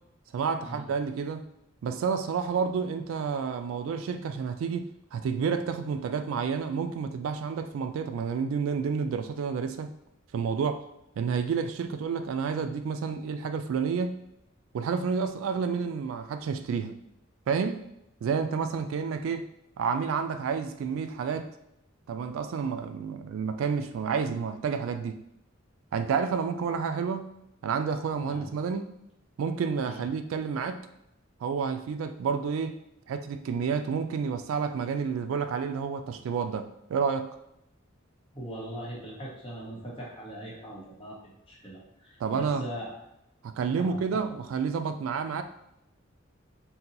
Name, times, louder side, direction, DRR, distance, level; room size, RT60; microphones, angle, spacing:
voice 1, 0.3-1.5 1.8-9.9 10.3-10.9 11.2-14.2 14.7-17.0 17.5-17.8 18.2-19.5 19.8-21.5 22.1-25.2 25.9-27.3 27.6-29.0 29.4-30.8 31.4-32.8 33.1-37.4 42.2-42.7 43.4-45.4, right 6 dB, 80° right, 9 dB, 0.3 m, -30 dB
voice 2, 38.3-42.9 43.7-44.3, right 1 dB, 30° left, -4 dB, 1.0 m, -41 dB
2.8 x 2.2 x 3.9 m, 0.82 s
head